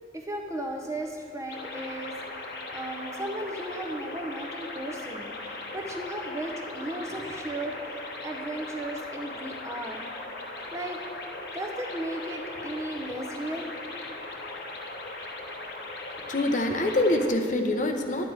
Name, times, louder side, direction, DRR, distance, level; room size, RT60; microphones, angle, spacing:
voice 1, 0.1-2.1 2.7-10.0 10.7-11.0 11.5-13.7, right 1 dB, 15° right, 1 dB, 0.7 m, -35 dB
sound 1, 1.5-17.3, left 2 dB, 60° left, 1.1 m, -39 dB
voice 2, 16.3-18.3, left 1 dB, 45° left, 4 dB, 0.7 m, -25 dB
10.5 x 9.0 x 4.7 m, 2.4 s
head